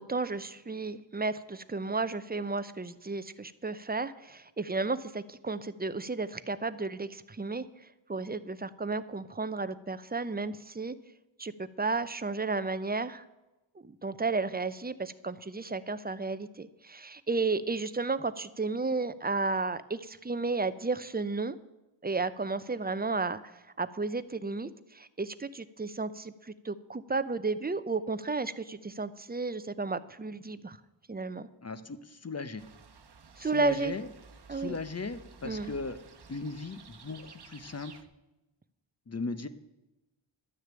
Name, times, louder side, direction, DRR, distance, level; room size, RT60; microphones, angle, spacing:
voice 1, 0.0-7.6 8.1-11.0 11.4-13.2 13.8-21.6 22.0-30.8 31.1-31.5 33.4-33.9 34.5-34.8 35.4-35.7, right 3 dB, 20° right, 14 dB, 0.6 m, -33 dB
voice 2, 31.6-32.6 33.4-34.1 34.5-36.0 36.3-37.9 39.1-39.5, left 3 dB, 30° left, 11 dB, 0.9 m, -37 dB
sound 1, 32.6-38.0, right 5 dB, 55° right, 1.1 m, -53 dB
12.0 x 6.5 x 8.9 m, 1.0 s
wide cardioid pair, 80°, 47 cm